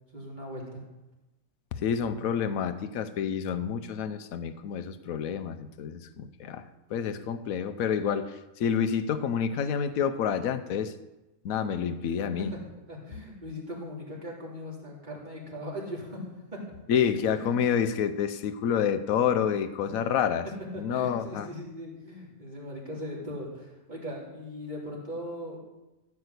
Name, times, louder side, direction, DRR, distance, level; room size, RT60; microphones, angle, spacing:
voice 1, 0.1-0.8 12.4-12.6 12.9-16.6 17.2-17.7 19.8-20.0 20.7-25.6, equal, 30° right, -3 dB, 3.3 m, -39 dB
voice 2, 1.7-10.9 11.4-12.5 16.9-20.5 20.8-21.5, left 8 dB, 75° left, 11 dB, 1.1 m, -28 dB
14.0 x 6.1 x 8.1 m, 1.0 s
omnidirectional pair, 1.5 m